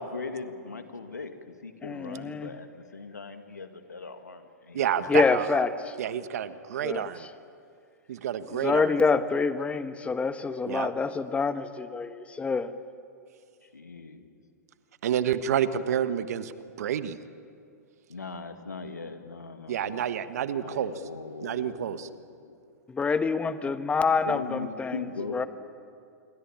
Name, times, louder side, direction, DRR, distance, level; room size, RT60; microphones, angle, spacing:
voice 1, 0.0-1.3 1.6-5.2 13.7-14.3 18.1-20.1 20.6-22.6 24.1-25.5, left 4 dB, 90° left, 7 dB, 2.2 m, -40 dB
voice 2, 1.8-2.5 5.1-5.9 6.8-7.3 8.5-12.7 22.9-25.0 25.3-25.5, left 4 dB, 15° left, 11 dB, 1.4 m, -26 dB
voice 3, 4.7-5.6 6.0-7.3 8.1-8.9 10.7-10.9 15.0-16.5 16.8-17.2 19.7-20.9 21.4-22.1, right 9 dB, 65° right, 12 dB, 1.4 m, -29 dB
27.5 x 23.5 x 8.9 m, 2.4 s
hypercardioid pair, 105°, 9 cm